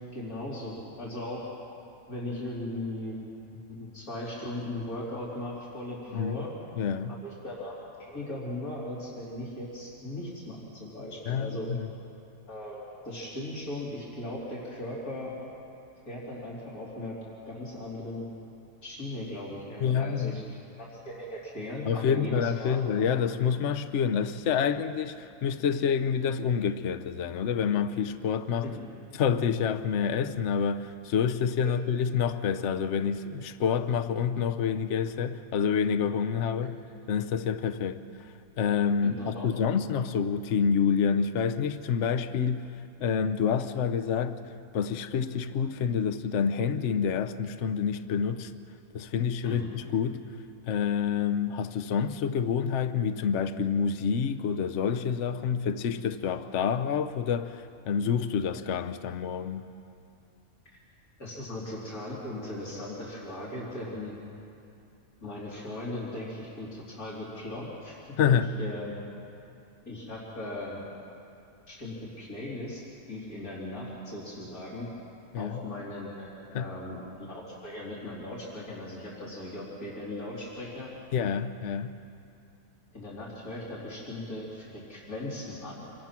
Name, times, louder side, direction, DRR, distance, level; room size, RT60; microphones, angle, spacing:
voice 1, 0.1-1.5 2.1-3.2 3.5-6.5 7.1-11.7 12.5-15.3 16.1-17.2 17.5-18.3 18.8-20.5 20.8-22.9 28.6-28.8 31.6-31.8 39.0-39.5 49.4-49.7 61.2-64.1 65.2-68.0 68.3-69.0 69.9-70.8 71.7-72.8 73.1-74.9 75.4-80.9 82.9-85.8, left 1 dB, 85° left, 4.0 m, -38 dB
voice 2, 6.1-6.5 6.8-7.2 11.3-11.9 19.8-20.3 21.8-28.7 29.1-36.8 37.1-38.0 38.6-42.7 43.0-44.4 44.7-48.5 48.9-50.2 50.7-59.6 68.2-68.5 75.3-75.6 76.5-76.7 81.1-81.9, left 7 dB, 60° left, 1.1 m, -28 dB
27.0 x 23.0 x 6.0 m
omnidirectional pair, 1.5 m